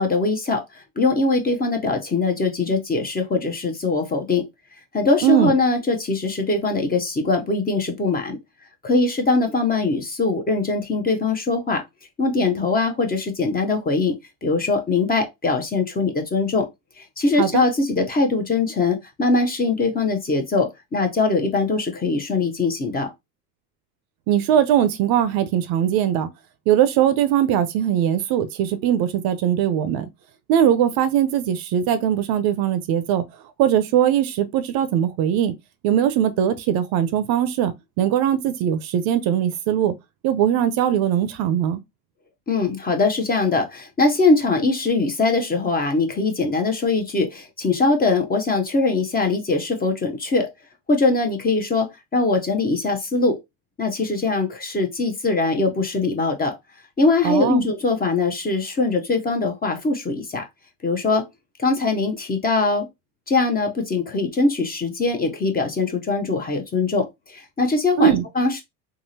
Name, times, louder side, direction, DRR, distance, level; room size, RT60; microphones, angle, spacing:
voice 1, 0.0-4.5 4.9-8.4 8.8-11.8 12.2-16.7 17.0-23.1 42.5-50.5 50.9-53.4 53.8-56.6 57.0-60.5 60.8-61.3 61.6-62.9 63.3-68.6, left 3 dB, 20° left, 0.7 m, -22 dB
voice 2, 5.2-5.5 17.4-17.6 24.3-26.3 26.7-30.1 30.5-33.2 33.6-35.5 35.8-39.9 40.2-41.8 57.2-57.6 68.0-68.2, right 10 dB, 55° right, 0.6 m, -20 dB
3.6 x 2.0 x 2.7 m
hypercardioid pair, 85°, 45 cm